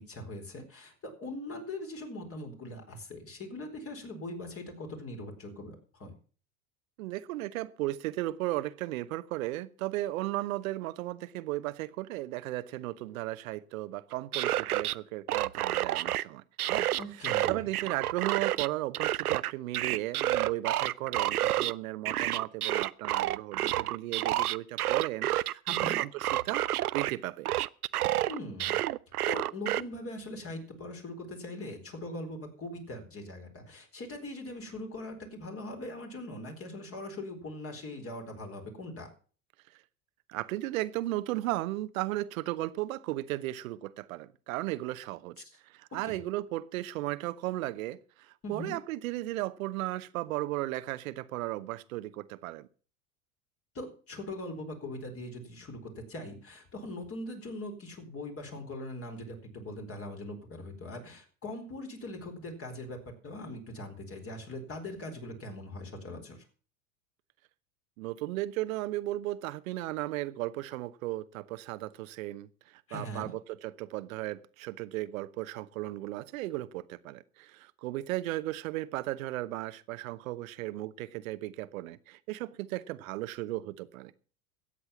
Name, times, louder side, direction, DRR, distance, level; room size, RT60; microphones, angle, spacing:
voice 1, 0.0-6.1 17.0-17.7 25.7-26.0 28.3-28.8 29.3-39.1 46.0-46.2 48.4-48.8 53.7-66.4 72.9-73.3, left 1 dB, 30° left, 4.3 m, -41 dB
voice 2, 7.0-16.4 16.7-16.9 17.2-26.6 26.9-27.5 40.3-52.7 68.0-84.1, right 17 dB, 65° right, 1.0 m, -35 dB
sound 1, 14.1-14.9 15.3-16.2 16.6-18.7 18.9-21.7 22.1-27.1 27.5-29.8, right 14 dB, 85° right, 0.5 m, -29 dB
13.5 x 8.4 x 7.1 m
hypercardioid pair, 85°, 44 cm